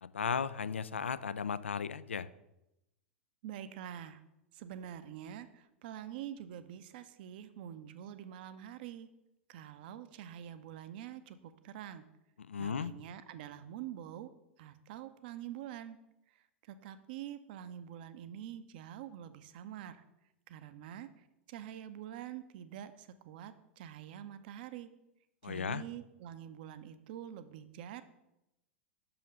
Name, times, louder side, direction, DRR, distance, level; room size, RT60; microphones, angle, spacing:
voice 1, 0.0-2.3 12.4-12.9 25.4-25.8, left 6 dB, 75° left, 16 dB, 0.3 m, -36 dB
voice 2, 3.4-4.2 4.5-9.1 9.5-12.0 12.6-14.3 14.6-16.0 16.7-20.0 20.5-21.1 21.5-24.9 25.4-28.0, right 10 dB, 50° right, 12 dB, 0.6 m, -46 dB
6.4 x 5.6 x 5.3 m, 0.89 s
figure-of-eight pair, 90°, 7 cm